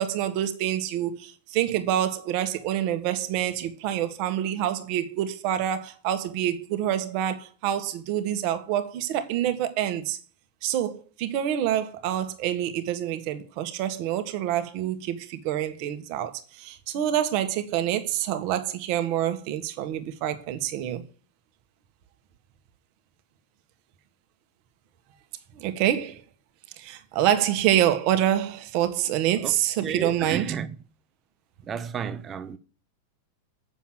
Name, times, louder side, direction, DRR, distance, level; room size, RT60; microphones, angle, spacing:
voice 1, 0.0-10.2 10.6-21.0 25.5-26.2 26.8-30.5, right 11 dB, 45° right, 1.6 m, -27 dB
voice 2, 29.8-30.7 31.7-32.6, right 7 dB, 25° right, 1.0 m, -32 dB
7.2 x 7.0 x 7.8 m
figure-of-eight pair, 90°, 0 cm